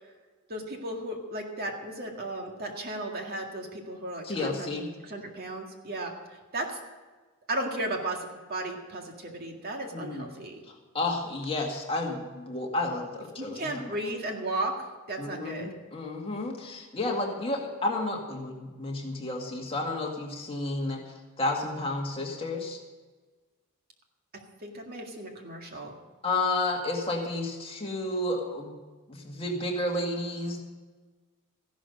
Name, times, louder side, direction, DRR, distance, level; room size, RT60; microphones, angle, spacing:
voice 1, 0.5-4.8 5.0-6.8 7.5-10.6 13.4-14.7 15.1-15.7 24.6-25.9, right 1 dB, 45° right, 2 dB, 2.0 m, -35 dB
voice 2, 4.2-4.9 9.9-10.3 10.9-13.9 15.2-22.8 26.2-28.7 29.1-30.6, left 2 dB, 25° left, 0 dB, 2.0 m, -31 dB
14.5 x 11.5 x 5.3 m, 1.3 s
head